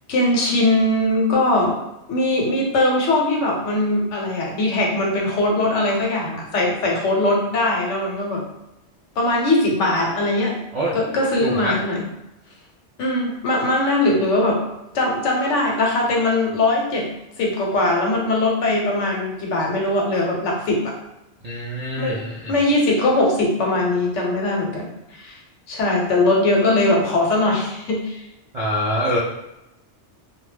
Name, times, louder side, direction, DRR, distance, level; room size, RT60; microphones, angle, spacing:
voice 1, 0.1-1.8 2.1-8.4 9.2-10.6 10.9-12.0 13.0-14.6 14.9-17.1 17.4-20.9 22.0-22.2 22.5-24.9 25.1-25.4 25.7-28.2, left 2 dB, 90° left, -1 dB, 1.0 m, -20 dB
voice 2, 11.4-11.8 21.4-22.5 28.5-29.2, equal, 65° right, -6 dB, 0.3 m, -25 dB
2.3 x 2.1 x 3.2 m, 0.91 s
omnidirectional pair, 1.2 m